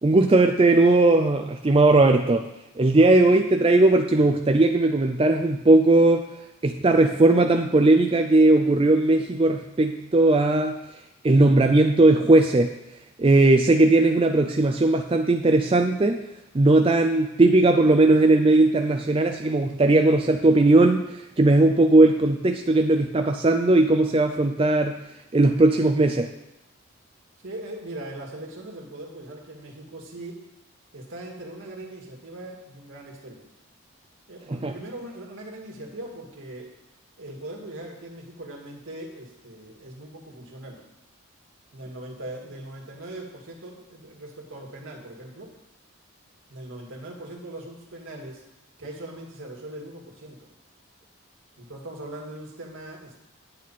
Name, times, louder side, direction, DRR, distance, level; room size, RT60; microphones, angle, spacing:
voice 1, 0.0-2.5 2.8-6.3 6.6-10.8 11.2-12.7 13.2-16.2 16.5-24.9 25.3-26.3 34.5-34.7, right 2 dB, 25° right, 4 dB, 0.4 m, -18 dB
voice 2, 27.4-30.4 30.9-33.4 34.3-36.7 37.2-40.8 41.7-45.5 46.5-48.4 48.8-50.5 51.6-53.2, right 1 dB, 70° right, -1 dB, 2.1 m, -40 dB
9.0 x 8.7 x 4.2 m, 0.90 s
head